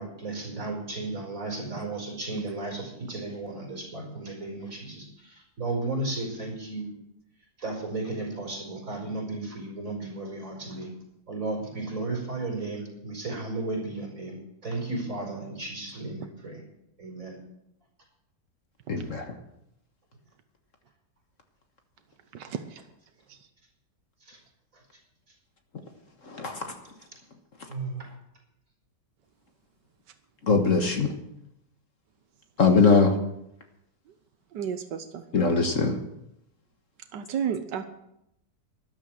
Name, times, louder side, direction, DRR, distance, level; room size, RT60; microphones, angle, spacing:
voice 1, 0.0-6.9 7.6-10.9 11.3-16.6 17.0-17.4 22.5-22.6 24.2-24.4 27.7-28.1, right 2 dB, 50° right, 0 dB, 5.1 m, -34 dB
voice 2, 18.9-19.4 26.3-26.7 30.4-31.1 32.6-33.1 35.3-36.0, left 4 dB, 50° left, 5 dB, 1.7 m, -21 dB
voice 3, 34.5-35.2 37.1-37.9, right 8 dB, 85° right, 9 dB, 1.5 m, -31 dB
13.0 x 11.0 x 6.3 m, 0.82 s
omnidirectional pair, 1.8 m